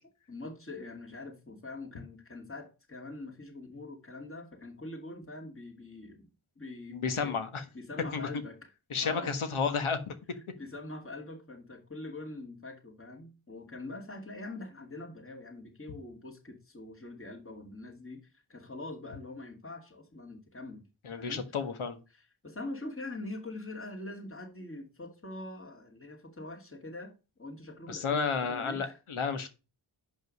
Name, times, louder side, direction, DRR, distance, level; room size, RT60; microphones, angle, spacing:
voice 1, 0.3-6.3 6.6-7.4 7.7-8.7 9.0-9.3 10.3-20.9 21.1-21.6 22.1-29.0, left 2 dB, 25° left, 2.7 m, -44 dB
voice 2, 6.9-7.6 8.1-8.3 8.9-10.1 21.0-22.0 27.9-29.5, left 5 dB, 85° left, 1.5 m, -31 dB
7.5 x 5.3 x 5.4 m
cardioid pair, 50°, 48 cm